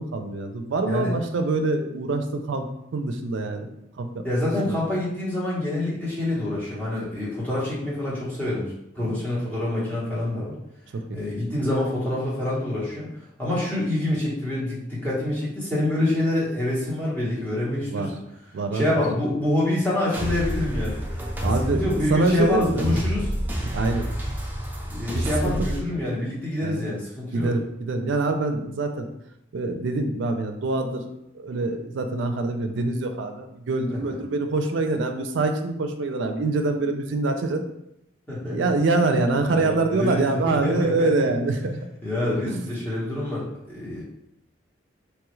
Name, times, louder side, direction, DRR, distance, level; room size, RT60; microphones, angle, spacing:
voice 1, 0.0-2.7 2.9-3.7 4.0-4.2 4.6-4.8 9.0-9.2 10.9-11.2 17.8-18.1 18.5-19.0 21.4-23.0 23.6-24.1 25.1-25.6 26.6-26.9 27.3-29.1 29.5-37.6 38.5-41.8 42.2-42.6, right 3 dB, 75° right, 6 dB, 0.4 m, -25 dB
voice 2, 4.2-10.5 11.1-13.1 13.4-18.2 18.7-21.0 21.7-23.3 24.9-27.5 33.9-34.2 38.3-38.6 39.4-41.3 42.0-44.0, left 1 dB, 10° left, -8 dB, 1.0 m, -26 dB
sound 1, 20.1-25.8, equal, 10° right, 0.4 m, -28 dB
3.1 x 2.3 x 3.0 m, 0.81 s
head